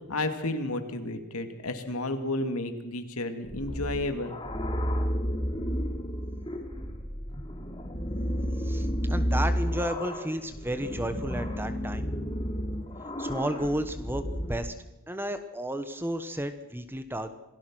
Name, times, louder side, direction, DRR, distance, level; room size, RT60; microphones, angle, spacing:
voice 1, 0.1-4.3, left 2 dB, 80° left, 7 dB, 2.5 m, -32 dB
sound 1, 3.5-14.5, equal, 25° left, 2.7 m, -31 dB
voice 2, 8.6-12.0 13.2-14.7 15.1-17.3, equal, 10° right, 9 dB, 1.2 m, -32 dB
27.0 x 18.0 x 6.3 m, 0.98 s
head